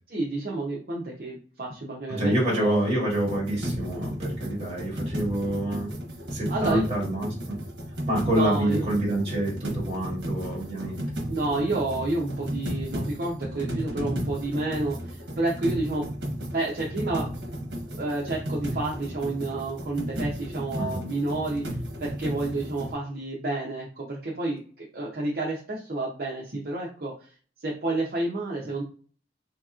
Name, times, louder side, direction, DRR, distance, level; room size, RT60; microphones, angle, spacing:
voice 1, 0.1-2.7 6.5-6.8 8.2-8.9 11.3-16.1 16.5-17.3 18.0-21.6 22.0-27.3 27.6-28.8, right 2 dB, 55° right, -4 dB, 0.7 m, -30 dB
voice 2, 2.1-5.9 6.3-7.6 8.1-11.0 20.8-21.1, right 1 dB, 35° right, -4 dB, 1.5 m, -27 dB
sound 1, 3.1-22.9, equal, 80° right, 0.9 m, -34 dB
3.5 x 2.8 x 2.4 m, 0.42 s
head